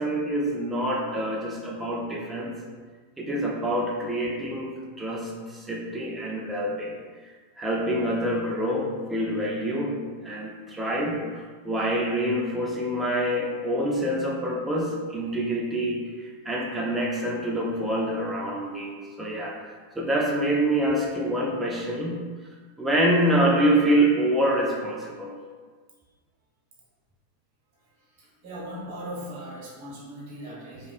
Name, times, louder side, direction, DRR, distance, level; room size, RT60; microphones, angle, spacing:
voice 1, 0.0-2.6 3.2-7.0 7.6-10.0 10.2-22.2 22.8-25.3, right 1 dB, 10° right, -2 dB, 0.7 m, -26 dB
voice 2, 28.2-30.9, equal, 45° right, -5 dB, 1.3 m, -39 dB
4.9 x 2.5 x 2.5 m, 1.5 s
figure-of-eight pair, 90°, 0 cm